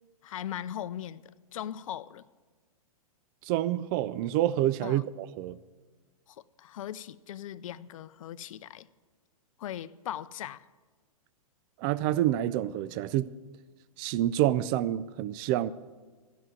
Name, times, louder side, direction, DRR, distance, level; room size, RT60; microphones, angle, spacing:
voice 1, 0.2-1.2 1.5-2.3 4.8-5.0 6.3-8.9 9.6-10.7, left 11 dB, 65° left, 0.5 m, -39 dB
voice 2, 3.5-5.6 11.8-13.3 14.0-15.7, right 13 dB, 35° right, 0.4 m, -28 dB
14.0 x 6.1 x 9.1 m
hypercardioid pair, 120°, 19 cm